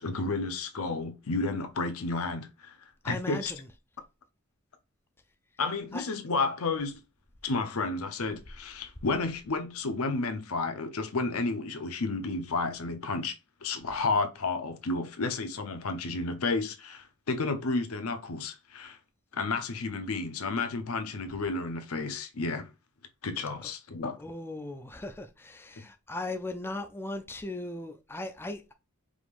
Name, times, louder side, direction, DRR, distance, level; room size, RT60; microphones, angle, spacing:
voice 1, 0.0-2.8 3.0-3.5 5.6-7.0 7.4-13.3 13.6-19.0 19.3-22.7 23.2-24.2, left 3 dB, 75° left, 0.7 m, -31 dB
voice 2, 3.0-3.7 5.9-6.0 24.2-28.7, left 2 dB, 10° left, 0.4 m, -38 dB
4.8 x 3.6 x 2.4 m
head